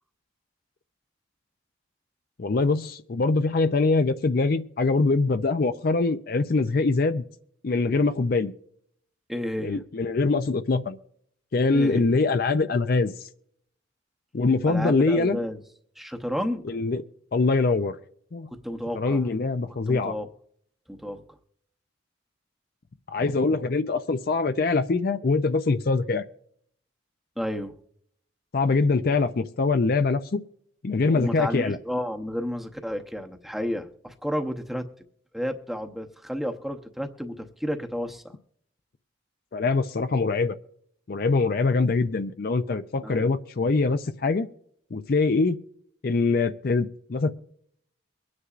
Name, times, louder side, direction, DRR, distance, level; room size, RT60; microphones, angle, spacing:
voice 1, 2.4-7.2 7.6-8.5 9.6-11.0 11.5-13.1 14.3-15.4 16.6-17.0 17.3-18.0 18.3-18.5 18.9-20.1 23.1-26.2 28.5-30.4 30.8-31.8 39.5-40.6 41.1-44.5 44.9-45.6 46.0-47.3, left 3 dB, 50° left, 10 dB, 0.5 m, -23 dB
voice 2, 9.3-9.8 11.7-12.1 14.7-15.6 16.0-16.6 18.6-19.3 19.9-20.3 20.9-21.2 27.4-27.7 31.1-34.9 35.3-38.3 43.0-43.3, equal, ahead, 4 dB, 0.8 m, -31 dB
23.5 x 9.7 x 2.5 m, 0.67 s
head